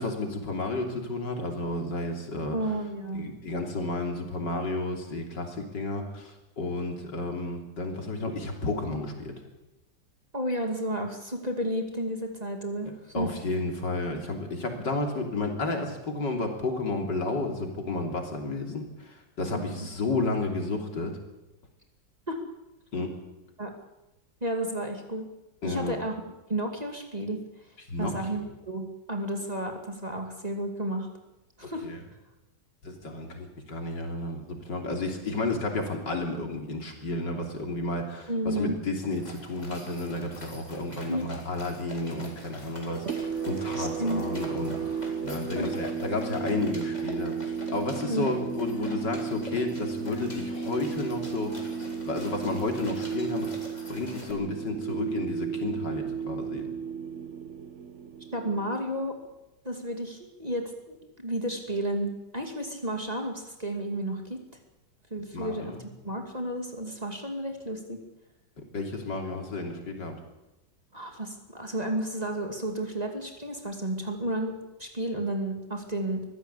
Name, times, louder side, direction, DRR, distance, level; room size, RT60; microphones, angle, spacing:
voice 1, 0.0-2.6 3.1-9.3 13.1-21.2 22.9-23.1 25.6-26.0 27.9-28.5 31.8-32.0 32.8-51.7 52.1-53.5 53.9-56.7 65.3-65.8 68.7-70.2, left 2 dB, 70° left, 3 dB, 3.8 m, -32 dB
voice 2, 2.5-3.2 10.3-13.3 19.5-19.9 22.3-22.4 23.6-23.7 24.4-25.3 25.6-26.2 26.5-27.4 28.0-31.1 31.6-31.9 38.3-38.8 41.1-41.3 43.8-44.3 45.5-45.7 48.1-48.3 58.3-59.2 59.6-64.4 65.1-68.0 70.9-76.3, right 1 dB, 20° right, 3 dB, 2.5 m, -32 dB
sound 1, 39.1-54.3, left 1 dB, 20° left, 4.1 m, -46 dB
sound 2, 42.9-59.2, right 6 dB, 45° right, 1.2 m, -34 dB
23.5 x 15.0 x 8.4 m, 0.98 s
omnidirectional pair, 2.0 m